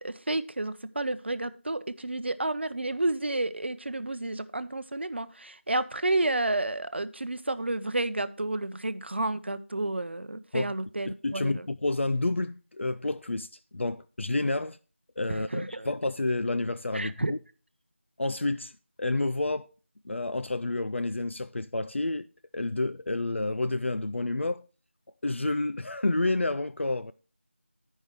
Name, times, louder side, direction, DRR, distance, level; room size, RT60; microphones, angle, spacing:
voice 1, 0.0-11.6 15.5-15.9 16.9-17.3, right 2 dB, 60° right, 0.6 m, -31 dB
voice 2, 11.0-14.8 15.2-17.4 18.2-18.7 19.0-19.7 20.0-22.3 22.5-24.7 25.2-27.1, left 2 dB, 65° left, 0.4 m, -29 dB
9.3 x 5.5 x 4.5 m
figure-of-eight pair, 170°, 7 cm